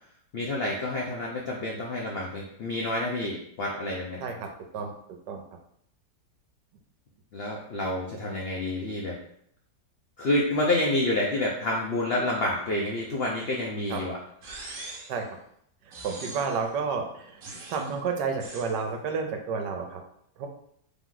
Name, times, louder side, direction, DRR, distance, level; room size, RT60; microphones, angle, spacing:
voice 1, 0.3-4.2 7.3-9.2 10.2-14.2, left 1 dB, 70° left, -3 dB, 0.5 m, -28 dB
sound 1, 14.4-15.2 15.9-16.7 17.4-17.9 18.4-18.8, right 2 dB, 55° right, 1.1 m, -42 dB
voice 2, 16.0-17.4 17.7-20.0 20.4-20.5, right 5 dB, 80° right, 4 dB, 1.3 m, -30 dB
3.6 x 3.0 x 3.8 m, 0.69 s
omnidirectional pair, 1.9 m